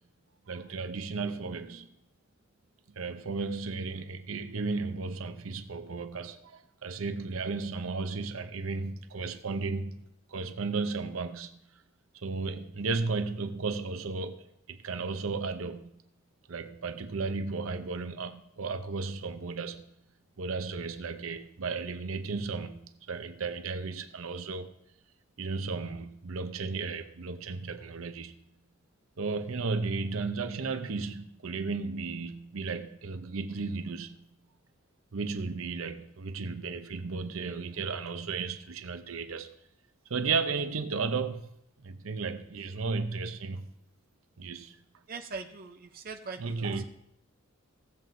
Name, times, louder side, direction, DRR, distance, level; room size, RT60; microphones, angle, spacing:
voice 1, 0.5-1.9 3.0-11.6 12.2-15.9 16.5-19.8 20.4-24.8 25.4-28.3 29.2-34.2 35.1-39.5 40.1-41.5 41.8-43.7 44.4-44.8 46.4-46.8, right 4 dB, 80° right, 0.7 m, -34 dB
voice 2, 45.1-46.8, right 4 dB, 45° right, 0.6 m, -41 dB
16.5 x 7.6 x 2.6 m
head